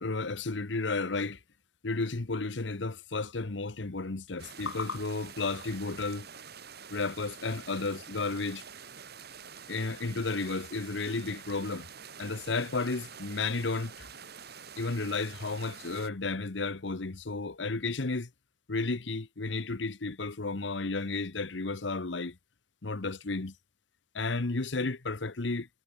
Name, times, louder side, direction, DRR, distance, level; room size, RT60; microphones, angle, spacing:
voice 1, 0.0-1.4 1.8-6.3 6.9-8.6 9.7-11.9 12.2-14.1 14.8-18.3 18.7-22.4 22.8-23.5 24.1-25.7, left 3 dB, 70° left, 1.1 m, -33 dB
sound 1, 4.4-16.1, right 7 dB, 60° right, 4.1 m, -47 dB
head